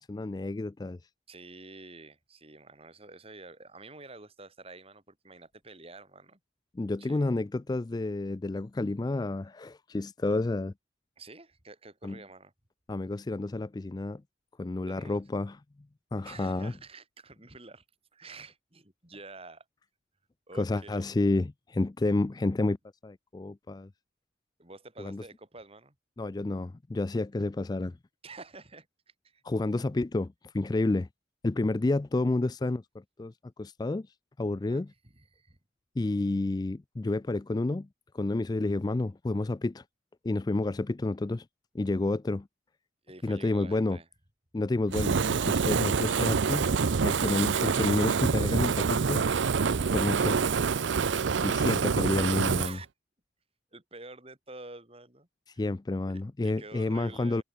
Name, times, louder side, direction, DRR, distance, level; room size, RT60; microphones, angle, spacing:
voice 1, 0.1-1.0 6.7-10.7 12.0-12.2 12.9-14.2 14.6-15.6 16.1-16.7 20.5-22.8 23.0-23.9 25.0-25.2 26.2-28.0 29.4-31.1 31.4-34.1 34.4-34.9 36.0-37.9 38.1-39.8 40.2-41.5 41.7-42.5 43.2-44.0 44.5-46.7 47.0-49.3 49.9-50.4 51.4-52.8 55.5-57.4, left 2 dB, 20° left, 0.3 m, -30 dB
voice 2, 1.3-6.4 7.0-7.4 11.2-12.5 14.8-15.2 16.2-17.8 18.1-19.7 20.5-21.1 24.6-26.0 28.2-28.9 29.2-29.4 34.6-34.8 35.1-35.6 43.0-44.1 52.6-52.9 53.7-55.3 55.5-55.7 56.4-57.4, right 3 dB, 30° right, 5.4 m, -48 dB
Fire, 44.9-52.7, right 5 dB, 70° right, 0.6 m, -26 dB
head